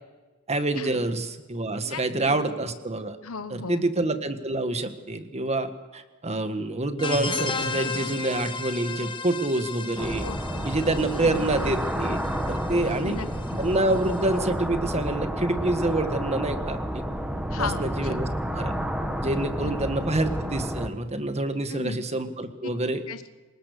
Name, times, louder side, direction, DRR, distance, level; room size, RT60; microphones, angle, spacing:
voice 1, 0.5-3.2 3.5-10.2 10.6-13.2 13.6-17.0 17.6-18.3 18.5-18.7 19.2-23.0, right 2 dB, 30° right, 9 dB, 1.6 m, -27 dB
voice 2, 1.9-2.4 3.2-3.9 10.2-10.7 11.2-11.5 12.7-13.6 17.5-18.2 19.6-19.7 21.7-22.0 23.1-23.4, left 4 dB, 70° left, 11 dB, 1.2 m, -36 dB
sound 1, 7.0-14.3, left 4 dB, 25° left, 1.4 m, -35 dB
sound 2, 10.0-20.9, equal, 5° right, 1.6 m, -30 dB
27.5 x 19.0 x 6.7 m, 1.2 s
head